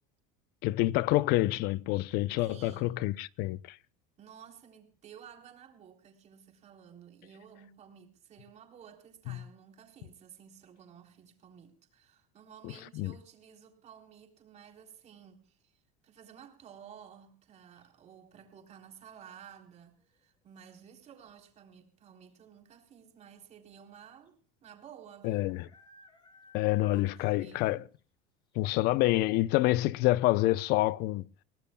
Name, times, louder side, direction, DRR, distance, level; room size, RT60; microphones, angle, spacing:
voice 1, 0.6-3.8 9.3-9.4 13.0-13.1 25.2-25.6 26.5-27.8 28.6-31.3, left 17 dB, 60° left, 0.7 m, -27 dB
voice 2, 2.4-3.1 4.2-25.4 26.9-27.8, right 8 dB, 40° right, 3.8 m, -54 dB
sound 1, 17.7-18.2 20.0-20.4 20.7-20.8 21.0-21.5 22.3-22.4 22.6-22.7 24.3-24.4 25.3-27.6 27.9-28.0 28.5-28.6 29.1-29.2, left 4 dB, 25° left, 5.0 m, -58 dB
24.5 x 18.0 x 2.3 m
supercardioid pair, 130°, 18 cm